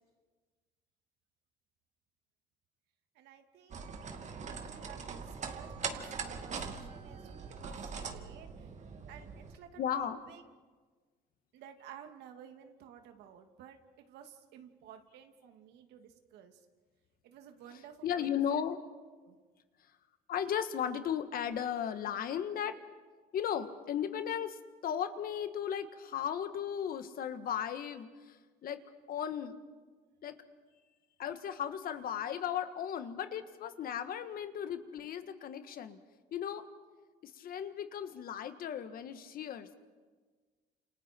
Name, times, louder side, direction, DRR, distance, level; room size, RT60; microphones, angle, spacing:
voice 1, 3.1-3.9 4.2-8.7 9.1-10.4 11.5-16.7 17.2-18.4 19.2-19.4, right 9 dB, 85° right, 5 dB, 2.4 m, -54 dB
sound 1, 3.7-9.6, right 5 dB, 45° right, 2.3 m, -42 dB
voice 2, 9.8-10.2 18.0-18.8 20.3-22.8 23.3-24.6 24.8-28.8 29.1-29.5 30.2-30.4 31.2-36.0 36.3-36.7 37.2-39.8, left 9 dB, 60° left, 9 dB, 1.6 m, -36 dB
30.0 x 28.5 x 4.6 m, 1.4 s
cardioid pair, 110°, 17 cm